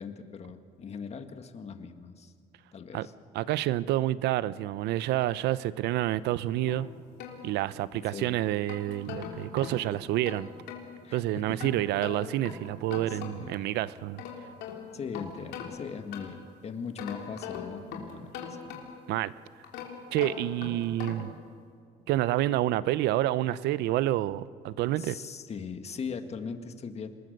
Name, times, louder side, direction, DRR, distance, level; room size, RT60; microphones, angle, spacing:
voice 1, 0.0-2.3 2.7-3.1 7.9-8.4 11.0-11.6 13.1-13.6 14.9-18.6 25.0-27.1, left 6 dB, 40° left, 1.8 m, -40 dB
voice 2, 3.3-6.9 7.4-10.5 11.1-14.2 19.1-19.3 20.1-21.3 22.1-25.2, right 14 dB, 80° right, 0.7 m, -28 dB
sound 1, 6.7-8.0 8.5-10.9 11.6-13.6 14.0-16.5 17.0-19.1 19.6-21.4, left 7 dB, 90° left, 3.7 m, -41 dB
26.5 x 21.0 x 6.7 m
cardioid pair, 110°, 17 cm